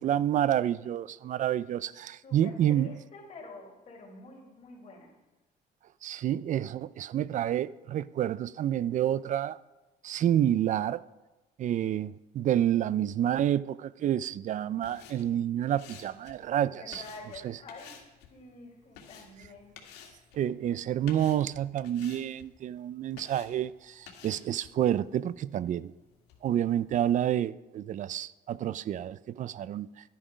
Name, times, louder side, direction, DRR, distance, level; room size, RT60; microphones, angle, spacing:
voice 1, 0.0-2.9 6.0-9.6 10.0-11.0 11.6-17.0 17.4-17.6 20.3-25.9 26.4-29.9, right 11 dB, 50° right, 0.4 m, -29 dB
voice 2, 2.2-5.1 16.7-19.8, left 2 dB, 40° left, 3.3 m, -48 dB
sound 1, 14.7-27.3, left 7 dB, 90° left, 1.9 m, -54 dB
12.0 x 10.0 x 5.0 m
cardioid pair, 110°, 17 cm